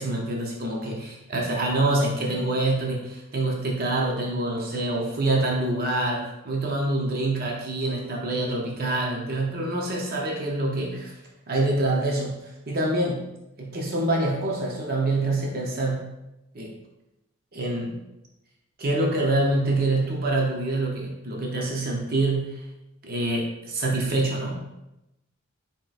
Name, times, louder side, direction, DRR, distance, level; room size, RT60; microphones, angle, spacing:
voice 1, 0.0-11.1 11.5-13.3 13.6-16.0 16.5-16.7 17.5-18.0 18.8-22.6 23.0-24.6, right 2 dB, 45° right, -1 dB, 0.6 m, -26 dB
4.0 x 3.6 x 2.3 m, 0.91 s
head